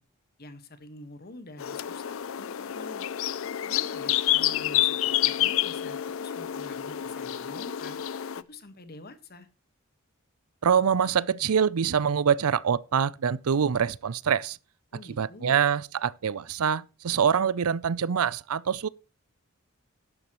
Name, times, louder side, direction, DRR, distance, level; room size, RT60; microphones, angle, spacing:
voice 1, 0.4-3.1 3.6-8.0 8.5-9.5 14.9-15.6, left 2 dB, 45° left, 1.5 m, -47 dB
sound 1, 1.6-8.4, left 12 dB, 60° left, 0.5 m, -28 dB
voice 2, 10.6-14.6 15.2-18.9, right 7 dB, 80° right, 0.5 m, -25 dB
12.5 x 11.0 x 3.0 m
head